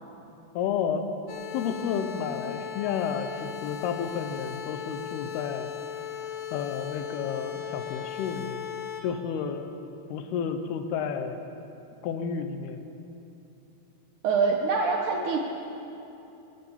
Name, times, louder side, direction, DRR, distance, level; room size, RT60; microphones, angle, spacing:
voice 1, 0.6-1.1 1.5-5.7 6.5-8.7 9.0-9.7 10.1-11.4 12.0-12.8, left 7 dB, 85° left, 7 dB, 2.8 m, -31 dB
sound 1, 1.3-9.0, left 9 dB, 65° left, 1.6 m, -37 dB
voice 2, 14.2-15.4, right 4 dB, 75° right, 1 dB, 1.8 m, -24 dB
20.5 x 7.7 x 7.2 m, 2.9 s
omnidirectional pair, 4.5 m